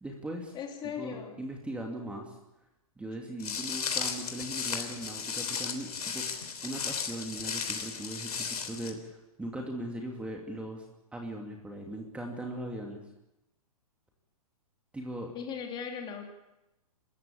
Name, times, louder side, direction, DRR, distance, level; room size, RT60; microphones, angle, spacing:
voice 1, 0.0-0.6 1.0-2.3 3.0-6.4 6.6-10.8 11.1-13.0 14.9-15.3, right 1 dB, 5° right, 1 dB, 2.6 m, -39 dB
voice 2, 0.5-1.4 15.3-16.3, left 7 dB, 25° left, 3 dB, 3.2 m, -38 dB
Walk footsteps, 3.4-8.9, left 6 dB, 80° left, 3.4 m, -35 dB
25.0 x 14.0 x 8.6 m, 0.93 s
hypercardioid pair, 135°, 19 cm